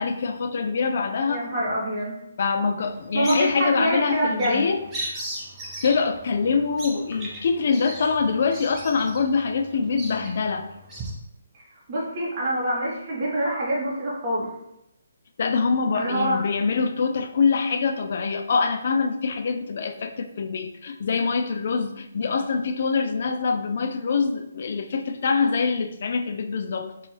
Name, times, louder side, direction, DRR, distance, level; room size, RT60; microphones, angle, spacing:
voice 1, 0.0-1.5 2.4-5.2 5.8-10.7 15.4-26.9, left 5 dB, 55° left, 6 dB, 0.4 m, -24 dB
voice 2, 1.3-2.1 3.1-4.7 11.5-14.5 15.9-16.4, right 1 dB, 35° right, -6 dB, 1.2 m, -26 dB
Bird vocalization bird call bird song, 2.8-11.1, right 1 dB, 15° right, 0.6 m, -38 dB
3.9 x 2.3 x 3.2 m, 0.84 s
hypercardioid pair, 155°, 0 cm